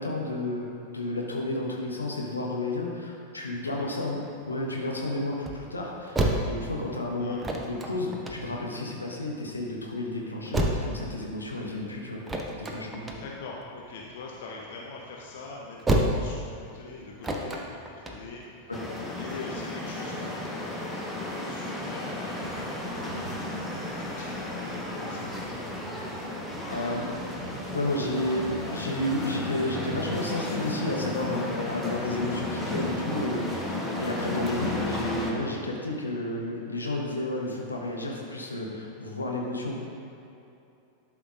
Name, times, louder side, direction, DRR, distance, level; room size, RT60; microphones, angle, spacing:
voice 1, 0.0-4.2 4.5-12.2 12.5-13.1 18.7-18.8 26.7-27.1 27.7-40.0, left 1 dB, 80° left, -1 dB, 1.0 m, -32 dB
sound 1, 3.8-19.4, right 1 dB, 15° right, 0.7 m, -32 dB
voice 2, 13.0-18.7 19.2-25.8, left 4 dB, 55° left, -2 dB, 0.8 m, -44 dB
sound 2, 18.7-35.3, left 1 dB, 5° left, 1.1 m, -34 dB
sound 3, 22.4-31.4, right 6 dB, 65° right, 0.4 m, -46 dB
11.5 x 5.9 x 2.5 m, 2.7 s
figure-of-eight pair, 90°, 0 cm